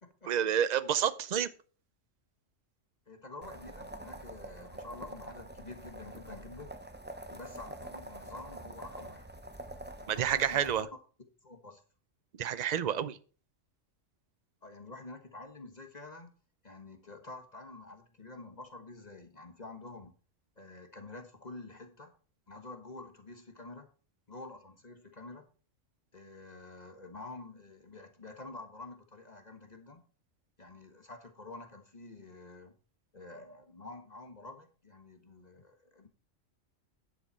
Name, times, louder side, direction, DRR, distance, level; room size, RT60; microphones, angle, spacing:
voice 1, 0.3-1.5 10.1-10.8 12.4-13.2, right 9 dB, 45° right, 0.6 m, -29 dB
voice 2, 3.1-6.7 7.3-9.3 10.0-10.9 11.4-11.8 14.6-16.3 16.6-20.1 20.6-22.1 22.5-23.9 24.3-25.4 26.1-30.0 30.6-32.7 33.1-36.1, left 2 dB, 35° left, 1.4 m, -48 dB
sound 1, 3.4-10.8, right 1 dB, 10° right, 0.7 m, -46 dB
10.5 x 7.5 x 4.3 m
omnidirectional pair, 1.3 m